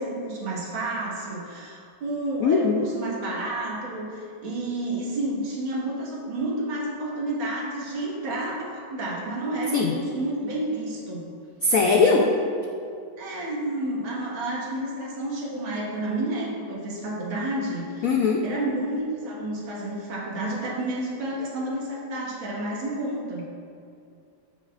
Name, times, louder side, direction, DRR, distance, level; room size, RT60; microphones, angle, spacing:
voice 1, 0.0-11.3 11.9-12.2 13.2-18.1 18.4-23.5, right 1 dB, 90° right, -4 dB, 2.3 m, -30 dB
voice 2, 2.4-2.9 9.7-9.9 11.6-12.3 18.0-18.4, left 4 dB, 85° left, 1 dB, 0.7 m, -20 dB
13.0 x 6.7 x 2.4 m, 2.4 s
omnidirectional pair, 2.2 m